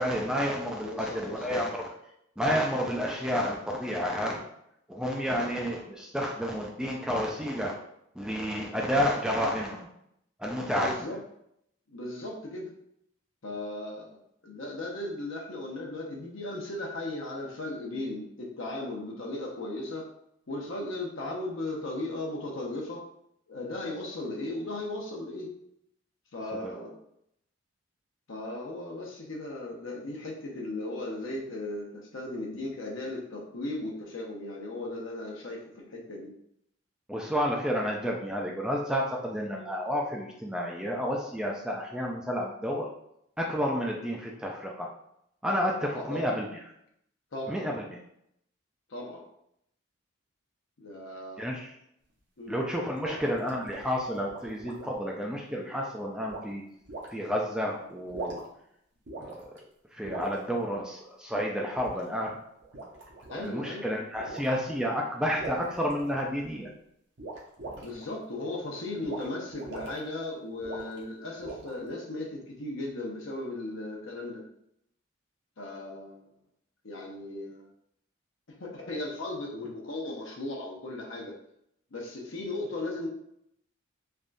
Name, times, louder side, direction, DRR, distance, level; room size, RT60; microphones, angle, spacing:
voice 1, 0.0-1.8 2.4-4.5 4.9-7.7 8.2-9.9 10.4-10.9 26.5-26.7 37.1-42.9 43.4-44.9 45.4-46.5 47.5-48.0 51.4-51.7 52.5-56.6 57.1-58.4 59.2-59.5 59.9-62.4 63.3-66.7, equal, 5° right, -1 dB, 0.3 m, -30 dB
voice 2, 0.8-1.7 10.8-11.2 11.9-12.7 13.4-14.2 14.4-20.1 20.5-23.0 23.5-25.5 26.3-27.0 28.3-36.3 45.9-46.2 47.3-47.6 48.9-49.2 50.8-51.5 52.4-52.6 53.0-53.2 63.3-63.8 67.8-74.4 75.6-76.3 76.8-77.7 78.6-81.4 81.9-83.1, left 2 dB, 75° left, -1 dB, 0.8 m, -36 dB
sound 1, 52.7-55.0 56.3-56.5 56.9-57.1 58.0-58.6 59.1-59.6 60.0-60.4 61.7-62.0 62.6-63.4 64.1-64.5 65.4-66.5 67.2-68.0 69.0-69.3 69.5-70.0 70.6-71.0 71.4-71.9, right 2 dB, 60° right, 0.7 m, -41 dB
3.4 x 2.3 x 2.5 m, 0.74 s
head